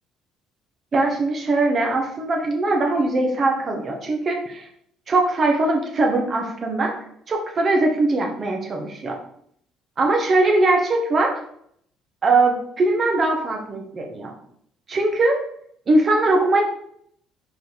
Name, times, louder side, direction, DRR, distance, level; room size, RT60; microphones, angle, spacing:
voice 1, 0.9-4.7 5.1-6.9 7.3-9.2 10.0-11.3 12.2-14.3 14.9-15.4 15.9-16.6, right 2 dB, 40° right, 2 dB, 1.5 m, -21 dB
4.9 x 4.9 x 4.2 m, 0.68 s
figure-of-eight pair, 55°, 0 cm